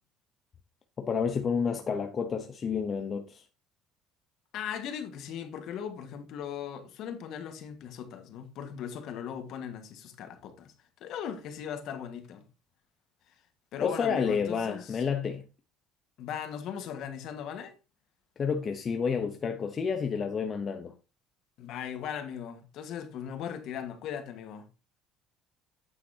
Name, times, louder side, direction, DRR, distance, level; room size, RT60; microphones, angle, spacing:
voice 1, 1.0-3.4 13.8-15.4 18.4-20.9, left 6 dB, 30° left, 0.8 m, -30 dB
voice 2, 4.5-10.7 11.0-12.5 13.7-15.0 16.2-17.7 21.6-24.7, left 8 dB, 55° left, 1.6 m, -38 dB
8.8 x 8.2 x 2.8 m
cardioid pair, 155°, 0 cm